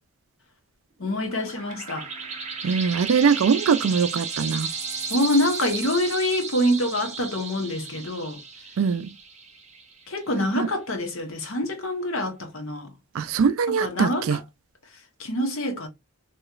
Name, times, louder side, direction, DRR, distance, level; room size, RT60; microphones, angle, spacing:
voice 1, 1.0-2.1 5.1-8.4 10.1-12.9 13.7-14.4 15.2-15.9, left 1 dB, 65° left, 1.0 m, -26 dB
sound 1, 1.0-10.2, right 5 dB, 30° right, 0.7 m, -34 dB
voice 2, 2.6-4.7 8.8-9.1 10.6-10.7 13.1-14.4, right 6 dB, 70° right, 0.3 m, -22 dB
3.0 x 2.9 x 2.4 m
head